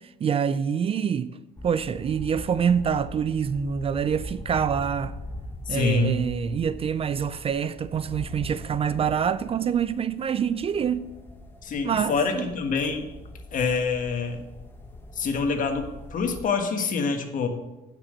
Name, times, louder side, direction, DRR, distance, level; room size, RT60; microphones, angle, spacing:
voice 1, 0.0-1.4 1.6-5.1 5.7-11.1 11.8-12.5, right 7 dB, 35° right, 0.4 m, -26 dB
sound 1, 1.6-16.4, left 1 dB, 15° left, 1.2 m, -42 dB
voice 2, 5.7-6.2 11.6-13.1 13.5-14.4 15.1-17.5, left 4 dB, 50° left, 1.5 m, -26 dB
9.7 x 6.0 x 6.6 m
cardioid pair, 110°, 17 cm